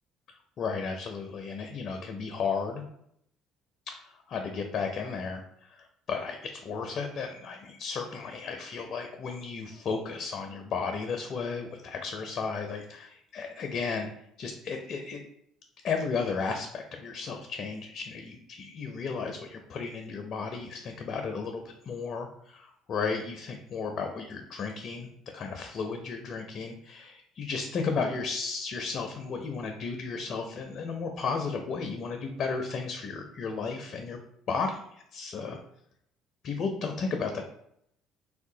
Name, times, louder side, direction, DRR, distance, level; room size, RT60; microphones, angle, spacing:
voice 1, 0.6-2.8 4.3-14.1 14.4-15.2 15.8-25.1 25.3-34.2 34.5-35.6 36.4-37.4, left 5 dB, 55° left, 4 dB, 0.4 m, -34 dB
3.4 x 2.7 x 2.6 m, 0.73 s
hypercardioid pair, 65°, 0 cm